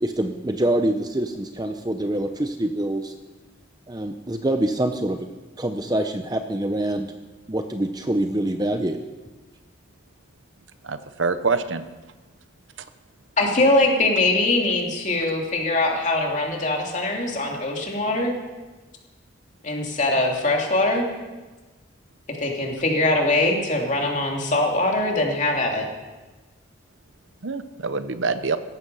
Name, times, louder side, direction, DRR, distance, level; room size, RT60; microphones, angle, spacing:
voice 1, 0.0-3.1 3.9-5.3 5.6-7.1 7.5-9.0, right 1 dB, 20° right, 6 dB, 0.7 m, -25 dB
voice 2, 10.8-11.8 27.4-28.6, right 4 dB, 75° right, 11 dB, 0.9 m, -25 dB
voice 3, 13.4-18.4 19.6-21.1 22.3-25.9, left 2 dB, 40° left, 0 dB, 3.0 m, -22 dB
18.0 x 14.5 x 5.6 m, 1.3 s
head